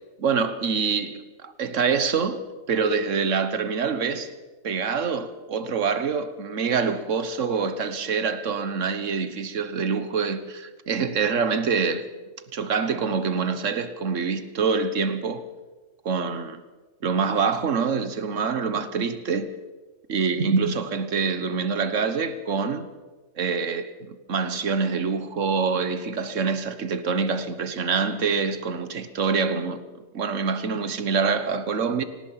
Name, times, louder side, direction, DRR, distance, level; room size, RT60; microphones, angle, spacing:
voice 1, 0.2-2.4 2.7-4.3 4.6-12.1 12.5-15.4 16.0-16.6 17.0-19.5 20.1-22.9 23.4-23.9 24.3-29.8 30.1-32.0, right 5 dB, 60° right, 1.5 m, -25 dB
25.0 x 18.5 x 5.7 m
omnidirectional pair, 1.5 m